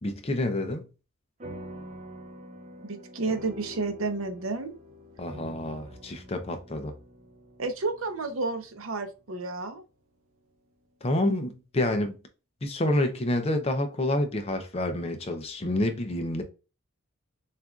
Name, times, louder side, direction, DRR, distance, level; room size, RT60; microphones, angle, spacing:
voice 1, 0.0-0.9 5.2-6.9 11.0-12.1 12.6-16.4, left 1 dB, 30° left, 0.5 m, -28 dB
sound 1, 1.4-10.2, equal, 35° right, 0.5 m, -46 dB
voice 2, 2.8-4.7 7.6-9.8, right 3 dB, 80° right, 0.7 m, -31 dB
6.5 x 2.5 x 2.3 m
head